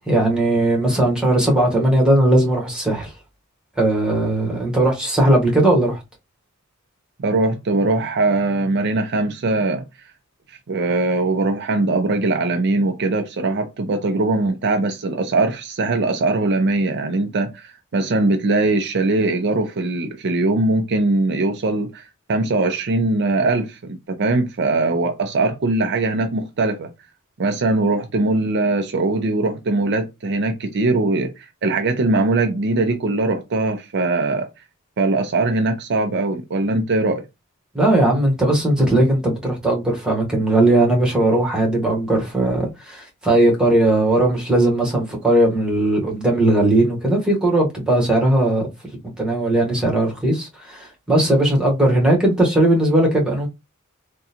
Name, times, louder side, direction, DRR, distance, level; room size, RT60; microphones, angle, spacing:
voice 1, 0.1-3.1 3.8-6.0 37.7-48.7 49.2-53.5, right 1 dB, 5° right, 1.1 m, -18 dB
voice 2, 7.2-9.9 10.7-26.9 27.4-34.5 35.0-37.2, right 2 dB, 55° right, 0.5 m, -21 dB
3.6 x 2.2 x 2.8 m
head